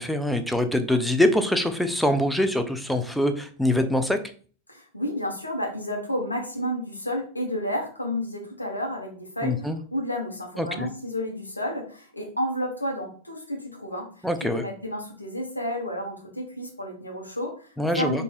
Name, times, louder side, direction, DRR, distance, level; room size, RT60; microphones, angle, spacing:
voice 1, 0.0-4.2 9.4-9.8 10.6-10.9 14.2-14.6 17.8-18.2, left 1 dB, ahead, 8 dB, 0.5 m, -24 dB
voice 2, 4.7-18.2, equal, 85° left, 1 dB, 1.0 m, -31 dB
5.2 x 2.6 x 2.4 m, 0.42 s
figure-of-eight pair, 90°, 0 cm